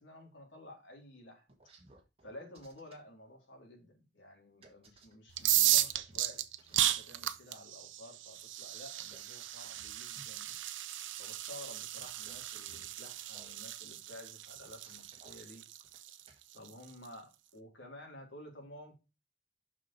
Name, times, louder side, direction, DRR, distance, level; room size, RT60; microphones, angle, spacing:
voice 1, 0.0-1.5 2.2-10.5 11.2-15.6 16.5-19.0, left 1 dB, 85° left, 3.3 m, -52 dB
sound 1, 1.5-3.0 4.6-7.0 9.1-10.7 12.0-13.5 14.5-15.4 15.8-16.4, right 3 dB, 30° right, 1.8 m, -59 dB
sound 2, 5.3-17.1, right 14 dB, 90° right, 0.6 m, -35 dB
6.4 x 6.1 x 4.3 m
head